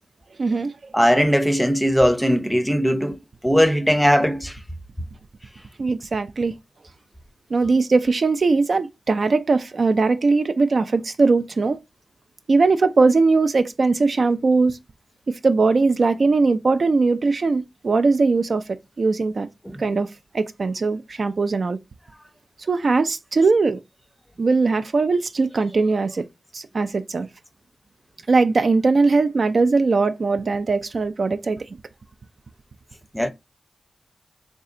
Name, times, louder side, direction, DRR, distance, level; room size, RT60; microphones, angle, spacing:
voice 1, 0.4-0.7 5.8-6.5 7.5-11.8 12.5-14.8 15.3-19.5 19.8-20.1 20.3-21.8 22.7-23.8 24.4-26.3 26.5-27.3 28.3-31.6, right 3 dB, 60° right, 0.3 m, -20 dB
voice 2, 0.9-4.6 19.6-19.8 33.1-33.3, equal, 5° left, 0.6 m, -19 dB
3.2 x 2.7 x 3.8 m
cardioid pair, 55°, 0 cm